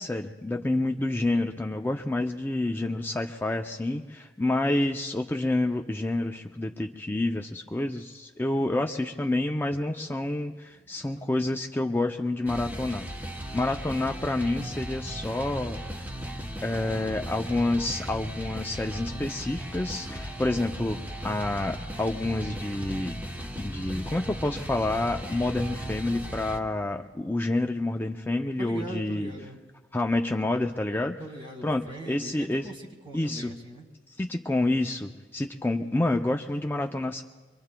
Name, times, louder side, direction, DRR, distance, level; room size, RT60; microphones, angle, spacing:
voice 1, 0.0-13.1 13.5-16.1 16.6-23.2 23.6-29.3 29.9-31.2 31.6-32.7 33.1-33.5 34.2-37.2, left 2 dB, 10° left, 3 dB, 0.4 m, -28 dB
voice 2, 10.8-11.3 28.6-29.6 31.2-33.9, right 1 dB, 30° right, 3 dB, 1.9 m, -41 dB
sound 1, 12.5-26.6, equal, 10° right, 0.8 m, -37 dB
26.0 x 24.0 x 2.2 m, 1.3 s
head